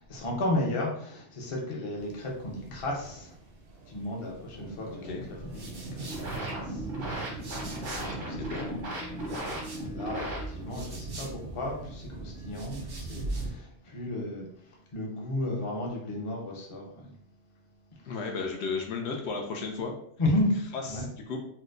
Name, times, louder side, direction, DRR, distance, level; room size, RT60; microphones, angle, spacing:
voice 1, 0.0-3.4 3.8-17.2 17.9-18.2 20.2-20.5 20.8-21.1, left 1 dB, 35° left, -2 dB, 0.7 m, -34 dB
sound 1, 2.0-13.5, right 3 dB, 60° right, 0.7 m, -41 dB
voice 2, 4.8-5.2 8.1-8.8 18.0-19.9 20.9-21.4, left 4 dB, 70° left, 2 dB, 0.8 m, -35 dB
sound 2, 5.2-8.3 8.7-11.8 12.3-13.6, right 2 dB, 40° right, 0.3 m, -48 dB
sound 3, 5.8-10.8, right 1 dB, 85° right, 1.3 m, -37 dB
4.4 x 2.1 x 2.5 m, 0.66 s
omnidirectional pair, 1.2 m